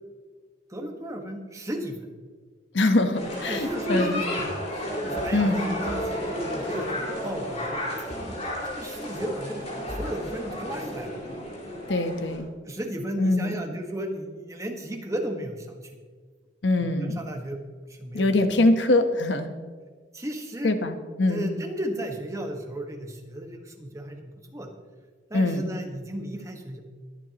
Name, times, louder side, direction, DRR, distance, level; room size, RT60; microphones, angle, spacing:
voice 1, 0.7-2.1 3.5-4.6 5.0-7.8 8.2-8.5 8.8-9.6 9.9-11.1 12.6-16.0 16.8-17.6 17.9-18.7 20.1-20.7 21.3-24.7 25.3-26.8, equal, 15° right, 3 dB, 1.4 m, -34 dB
voice 2, 2.7-4.2 5.3-5.6 11.9-12.5 13.2-13.6 16.6-17.2 18.1-19.5 20.6-21.5 25.3-25.7, left 2 dB, 75° left, 8 dB, 1.1 m, -23 dB
sound 1, 3.1-12.4, left 1 dB, 40° left, 4.6 m, -32 dB
22.0 x 10.5 x 3.0 m, 1.5 s
head